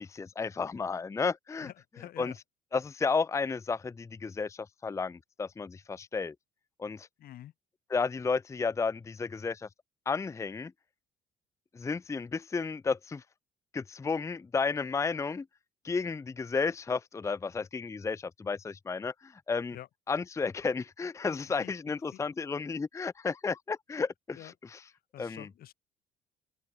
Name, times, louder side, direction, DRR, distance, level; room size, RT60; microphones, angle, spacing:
voice 1, 0.0-1.7 2.2-2.3 2.7-6.3 6.8-7.1 7.9-9.7 10.1-10.7 11.7-13.2 13.7-15.5 15.8-19.8 20.1-24.8 25.2-25.5, left 4 dB, 15° left, 0.6 m, -32 dB
voice 2, 1.6-2.4 7.2-7.5 19.7-19.9 21.6-21.7 22.1-22.2 24.3-24.5 25.1-25.7, left 13 dB, 60° left, 1.3 m, -47 dB
open air
cardioid pair, 110°, 17 cm